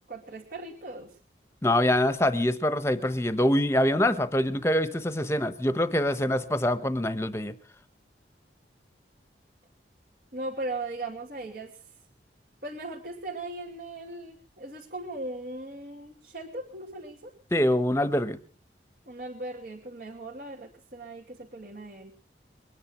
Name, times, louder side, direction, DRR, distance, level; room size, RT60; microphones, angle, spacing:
voice 1, 0.1-1.1 10.3-11.8 12.6-17.3 19.1-22.1, right 2 dB, 55° right, -2 dB, 2.6 m, -38 dB
voice 2, 1.6-7.5 17.5-18.4, left 1 dB, 15° left, 13 dB, 1.1 m, -25 dB
22.5 x 10.5 x 6.1 m, 0.39 s
head